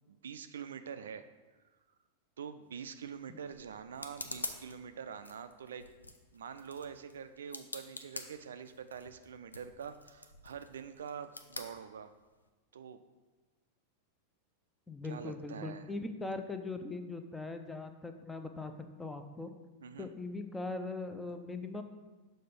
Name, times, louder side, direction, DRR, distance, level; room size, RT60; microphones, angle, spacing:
voice 1, 0.1-1.3 2.4-5.9 6.3-12.1 12.7-13.0 15.1-15.9 19.8-20.1, right 7 dB, 65° right, 10 dB, 0.3 m, -45 dB
sound 1, 2.6-12.5, left 2 dB, 80° left, 0.5 m, -48 dB
voice 2, 14.9-18.7 19.0-19.5 20.0-21.8, left 3 dB, 10° left, 7 dB, 0.5 m, -40 dB
6.7 x 3.8 x 5.2 m, 1.2 s
figure-of-eight pair, 90°, 0 cm